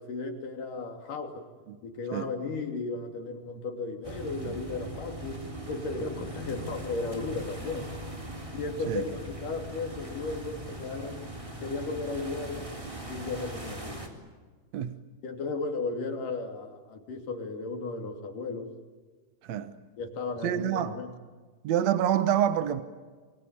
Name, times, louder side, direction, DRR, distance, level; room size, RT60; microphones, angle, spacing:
voice 1, 0.0-1.5 1.8-5.4 5.7-7.9 8.5-11.3 11.6-12.7 13.1-14.0 15.2-18.7 20.0-21.1, left 3 dB, 75° left, 4.5 m, -35 dB
sound 1, 4.0-14.1, right 1 dB, 10° right, 3.3 m, -40 dB
voice 2, 20.4-20.9 21.6-22.8, right 10 dB, 65° right, 2.1 m, -26 dB
27.0 x 24.5 x 8.8 m
omnidirectional pair, 3.8 m